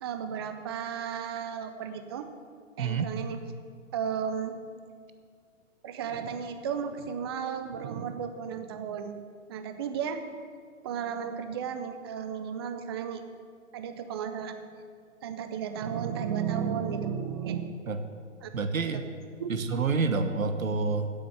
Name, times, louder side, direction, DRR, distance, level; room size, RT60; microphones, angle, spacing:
voice 1, 0.0-2.3 2.8-3.4 3.9-4.6 5.8-9.2 9.5-10.3 10.8-13.2 13.7-14.6 15.2-17.6 18.4-18.5 19.4-19.5, right 7 dB, 20° right, 8 dB, 0.4 m, -34 dB
voice 2, 2.8-3.1 17.9-18.0 18.5-19.0 19.5-21.1, right 4 dB, 85° right, 8 dB, 1.1 m, -28 dB
9.1 x 7.8 x 7.8 m, 2.1 s
figure-of-eight pair, 130°, 40 cm